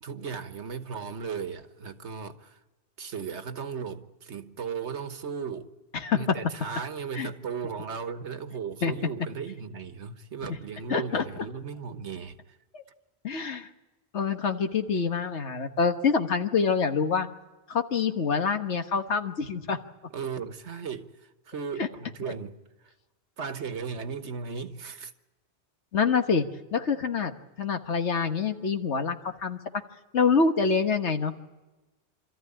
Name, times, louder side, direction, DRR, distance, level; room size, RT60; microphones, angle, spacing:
voice 1, 0.0-2.6 3.0-5.7 6.1-12.4 20.1-22.6 23.4-25.1, right 6 dB, 80° right, 1.5 m, -36 dB
voice 2, 5.9-6.4 7.2-7.3 8.8-8.9 10.9-11.2 12.7-12.8 13.2-13.7 14.1-17.3 17.7-19.8 21.8-21.9 25.9-26.5 26.7-27.3 27.6-29.2 29.4-29.6 30.1-31.3, left 5 dB, 90° left, 1.6 m, -26 dB
26.5 x 14.0 x 9.9 m
omnidirectional pair, 1.1 m